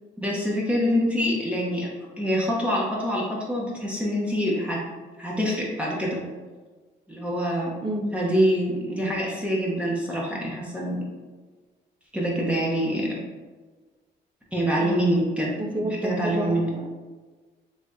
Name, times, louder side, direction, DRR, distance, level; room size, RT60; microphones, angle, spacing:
voice 1, 0.2-1.9 2.2-4.8 5.2-6.2 7.1-7.7 8.1-11.0 12.1-13.1 14.5-16.7, equal, 5° right, -5 dB, 0.9 m, -25 dB
voice 2, 7.8-8.1 14.8-15.1 15.6-16.9, right 1 dB, 25° right, 4 dB, 0.5 m, -30 dB
3.5 x 3.3 x 2.7 m, 1.4 s
cardioid pair, 90°, 20 cm